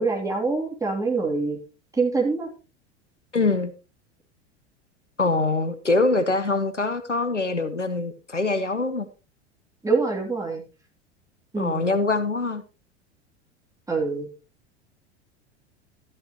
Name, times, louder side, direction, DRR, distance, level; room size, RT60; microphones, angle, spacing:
voice 1, 0.0-1.6 1.9-2.5 9.8-10.6 11.5-11.9 13.9-14.3, right 4 dB, 10° right, 0 dB, 2.9 m, -25 dB
voice 2, 3.3-3.7 5.2-9.1 11.6-12.6, left 3 dB, 90° left, 10 dB, 1.0 m, -24 dB
12.5 x 11.0 x 3.0 m, 0.31 s
figure-of-eight pair, 80°, 35 cm